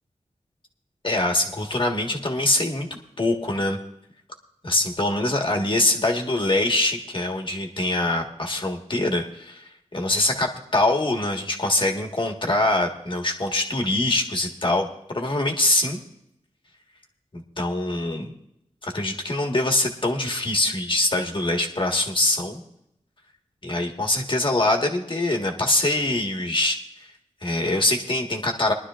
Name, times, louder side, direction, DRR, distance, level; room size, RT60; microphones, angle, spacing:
voice 1, 1.0-2.9 3.2-3.8 4.6-16.0 17.3-18.3 18.8-22.6 23.6-27.1 27.4-28.7, left 2 dB, 45° left, 2 dB, 1.5 m, -24 dB
22.5 x 11.5 x 2.5 m, 0.79 s
wide cardioid pair, 90°, 12 cm